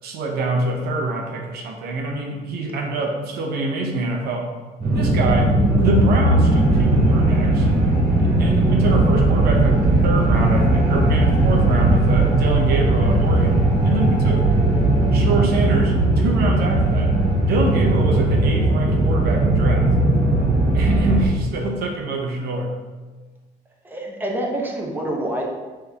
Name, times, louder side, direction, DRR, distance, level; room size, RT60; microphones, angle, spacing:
voice 1, 0.0-4.5 4.9-7.7 8.4-14.4 15.1-17.1 17.4-19.9 20.7-22.8, right 2 dB, 70° right, 1 dB, 0.7 m, -25 dB
sound 1, 4.8-21.3, right 2 dB, 50° right, 1.5 m, -18 dB
voice 2, 23.8-25.4, right 1 dB, 10° right, -1 dB, 0.7 m, -26 dB
4.3 x 3.2 x 3.4 m, 1.3 s
cardioid pair, 110°, 17 cm